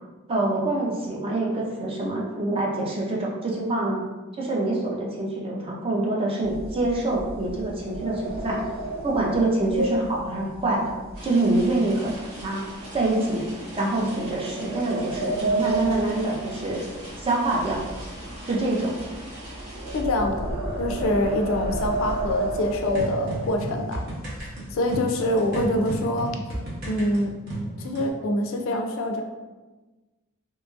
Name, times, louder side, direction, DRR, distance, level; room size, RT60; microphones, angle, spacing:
voice 1, 0.3-4.0 4.4-8.6 9.0-10.9 11.2-12.1 12.4-12.6 12.9-13.5 13.7-16.8 17.2-17.8 18.4-18.9, right 2 dB, 25° right, -3 dB, 0.4 m, -25 dB
sound 1, 6.4-11.8 12.1-12.4 12.9-13.1 13.9-17.2 17.5-23.7 24.3-24.4 24.7-25.0 25.3-26.0, right 1 dB, 65° right, 1.4 m, -31 dB
sound 2, 11.1-20.0, right 1 dB, 90° right, 1.3 m, -41 dB
voice 2, 19.9-20.5 20.8-24.0 24.7-26.3 26.8-27.3 27.8-29.2, left 1 dB, 65° left, 3 dB, 0.3 m, -25 dB
sound 3, 22.9-28.1, right 1 dB, 50° right, 0.8 m, -33 dB
2.8 x 2.6 x 2.3 m, 1.2 s
head